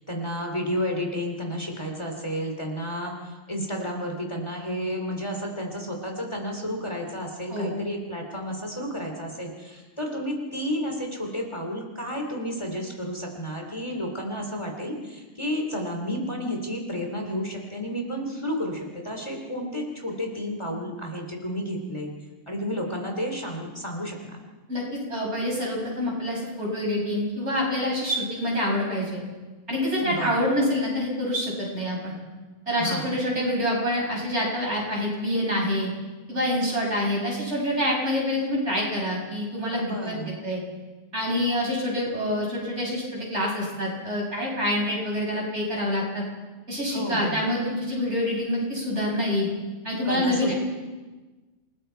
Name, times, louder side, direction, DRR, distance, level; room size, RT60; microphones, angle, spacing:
voice 1, 0.0-22.1 22.5-24.4 30.0-30.3 32.8-33.1 39.8-40.4 46.9-47.4 50.0-50.5, equal, 20° left, 1 dB, 3.2 m, -31 dB
voice 2, 7.5-7.8 24.7-29.2 29.7-32.1 32.7-35.9 36.3-39.8 40.1-40.2 40.4-40.6 41.1-46.2 46.7-49.5 49.8-50.5, left 1 dB, 60° right, -3 dB, 7.0 m, -26 dB
28.5 x 20.0 x 4.6 m, 1.3 s
omnidirectional pair, 1.3 m